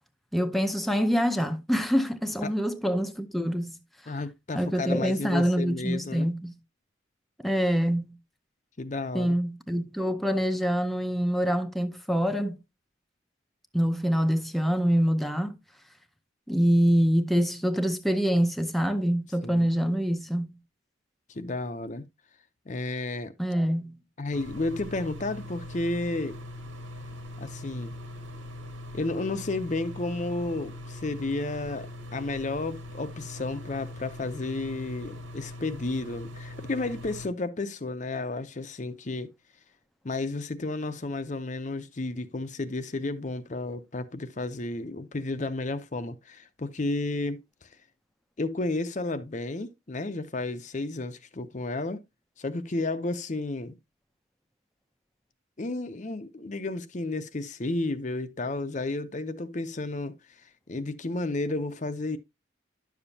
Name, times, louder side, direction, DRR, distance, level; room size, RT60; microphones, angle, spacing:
voice 1, 0.3-4.2 4.5-6.6 7.4-8.2 9.1-12.6 13.7-15.6 16.5-20.6 23.4-24.0, equal, ahead, 0.6 m, -25 dB
voice 2, 4.1-6.3 8.8-9.3 19.4-19.7 21.3-22.1 22.7-23.3 24.2-26.4 27.4-27.9 28.9-39.3 40.0-47.7 48.4-52.0 52.4-53.7 55.6-60.2 60.7-62.2, left 2 dB, 40° left, 0.6 m, -32 dB
sound 1, 24.3-37.3, left 1 dB, 85° right, 1.9 m, -41 dB
11.0 x 7.0 x 2.7 m
head